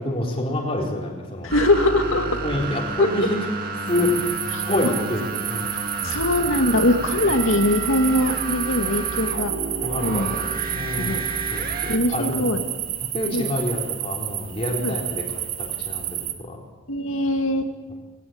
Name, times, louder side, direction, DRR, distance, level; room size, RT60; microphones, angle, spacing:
voice 1, 0.0-1.5 2.4-3.4 3.9-5.7 9.8-11.2 11.5-12.5 13.1-15.3 15.6-16.6, left 1 dB, 25° left, -2 dB, 3.7 m, -27 dB
voice 2, 1.4-2.4 3.0-3.1 4.5-4.6 6.0-9.5 10.0-10.4 10.7-11.2 11.9-12.6 13.3-13.4 14.8-15.0 16.9-17.7, left 1 dB, 70° left, 5 dB, 2.3 m, -22 dB
sound 1, 1.5-12.0, right 3 dB, 45° right, 1.9 m, -30 dB
sound 2, 3.9-16.3, right 11 dB, 85° right, 2.1 m, -30 dB
20.5 x 17.0 x 8.8 m, 1.4 s
head